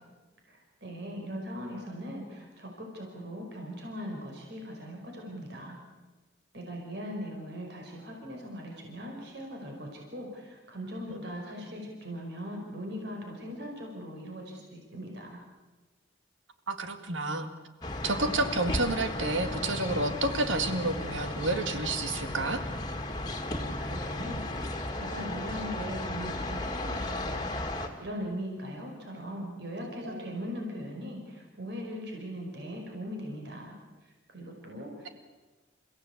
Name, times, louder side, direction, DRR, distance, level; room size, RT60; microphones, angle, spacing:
voice 1, 0.5-5.8 6.5-15.4 23.6-33.7 34.3-35.1, equal, 60° right, 1 dB, 5.1 m, -40 dB
voice 2, 16.7-17.5 18.0-22.6 29.8-30.3 35.0-35.1, right 2 dB, 80° right, 8 dB, 2.1 m, -30 dB
sound 1, 17.8-27.9, left 1 dB, 20° left, 2.2 m, -35 dB
29.0 x 16.0 x 8.4 m, 1.2 s
head